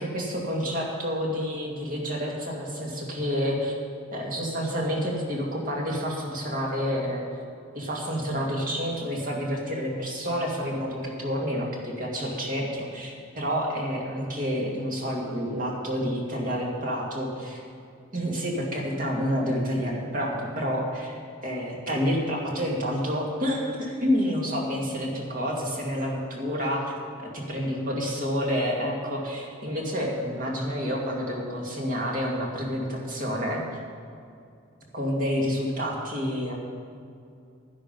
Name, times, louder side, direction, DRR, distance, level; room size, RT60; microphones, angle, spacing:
voice 1, 0.0-3.8 4.1-7.2 7.7-17.6 18.1-26.9 27.2-33.6 34.9-36.5, equal, 40° right, -2 dB, 2.1 m, -29 dB
11.0 x 11.0 x 5.3 m, 2.5 s
head